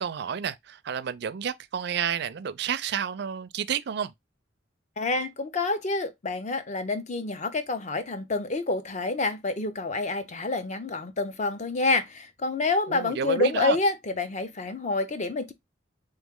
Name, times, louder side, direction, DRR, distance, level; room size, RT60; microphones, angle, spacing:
voice 1, 0.0-4.1 12.9-13.8, right 7 dB, 60° right, 0.4 m, -30 dB
voice 2, 5.0-15.5, left 3 dB, 40° left, 0.6 m, -28 dB
3.7 x 3.1 x 3.6 m
head